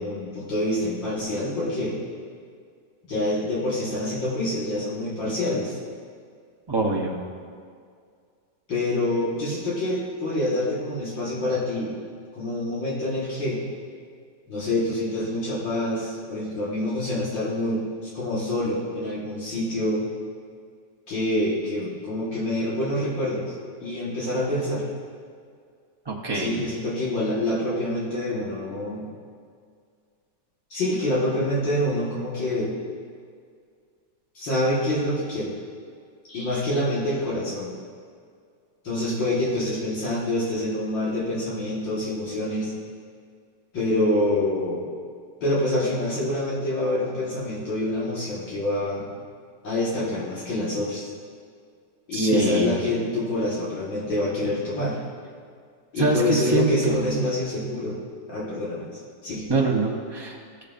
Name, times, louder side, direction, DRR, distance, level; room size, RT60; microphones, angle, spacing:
voice 1, 0.0-2.0 3.1-5.8 8.7-12.0 12.4-13.6 14.5-17.8 18.1-20.1 21.1-23.5 23.8-24.9 26.3-29.1 30.7-32.7 34.3-35.5 36.3-37.8 38.8-42.7 43.7-44.9 45.4-49.1 49.6-51.1 52.1-55.0 55.9-58.0 58.3-59.5, left 1 dB, 75° left, -7 dB, 2.4 m, -26 dB
voice 2, 6.7-7.1 26.1-26.6 52.1-52.7 56.0-57.3 59.5-60.6, right 3 dB, 35° right, -2 dB, 0.4 m, -24 dB
16.0 x 6.7 x 2.5 m, 2.1 s
omnidirectional pair, 2.0 m